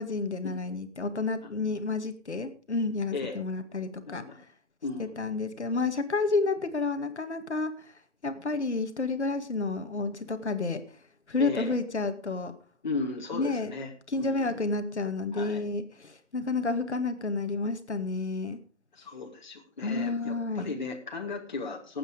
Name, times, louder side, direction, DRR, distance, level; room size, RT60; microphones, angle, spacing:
voice 1, 0.0-4.2 5.0-7.7 8.2-10.8 11.3-12.5 13.3-13.7 14.1-18.6 19.8-20.8, left 3 dB, 65° left, 8 dB, 2.2 m, -30 dB
voice 2, 4.1-4.4 4.8-5.2 11.4-11.8 12.8-14.6 15.3-15.6 18.9-22.0, left 3 dB, 40° left, 1 dB, 2.4 m, -36 dB
18.0 x 8.9 x 5.0 m, 0.39 s
figure-of-eight pair, 160°, 37 cm